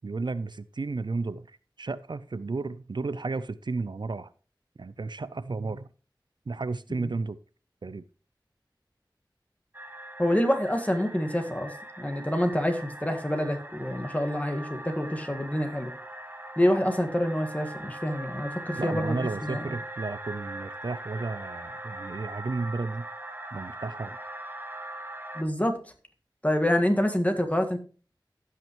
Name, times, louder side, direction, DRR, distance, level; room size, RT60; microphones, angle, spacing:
voice 1, 0.0-4.3 4.8-5.9 6.5-7.4 7.8-8.0 18.8-23.1 23.5-24.2, right 3 dB, 70° right, 16 dB, 0.4 m, -33 dB
sound 1, 9.7-25.4, right 1 dB, 25° right, 1.0 m, -41 dB
voice 2, 10.2-15.9 16.6-19.7 25.3-25.8 26.4-27.8, left 1 dB, 20° left, 5 dB, 1.6 m, -27 dB
16.0 x 5.8 x 3.0 m, 0.37 s
wide cardioid pair, 50°, 8 cm